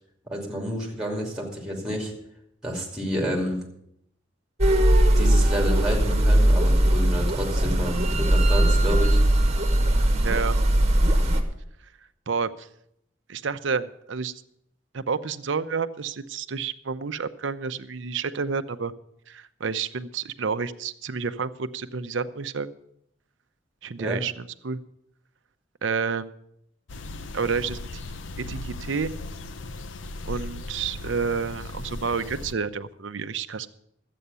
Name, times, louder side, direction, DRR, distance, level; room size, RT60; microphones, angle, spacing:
voice 1, 0.2-2.1 2.6-3.6 5.1-9.2 24.0-24.2, equal, 5° right, 0 dB, 2.7 m, -29 dB
sound 1, 4.6-11.4, right 1 dB, 35° right, 1.3 m, -20 dB
voice 2, 10.2-10.6 12.3-12.7 13.3-14.3 14.9-18.9 19.3-22.7 23.8-24.8 25.8-26.3 27.3-27.8 28.5-29.1 30.2-33.7, right 5 dB, 80° right, 11 dB, 0.6 m, -29 dB
sound 2, 26.9-32.5, left 2 dB, 85° left, 0.7 m, -37 dB
12.5 x 8.5 x 6.8 m, 0.74 s
head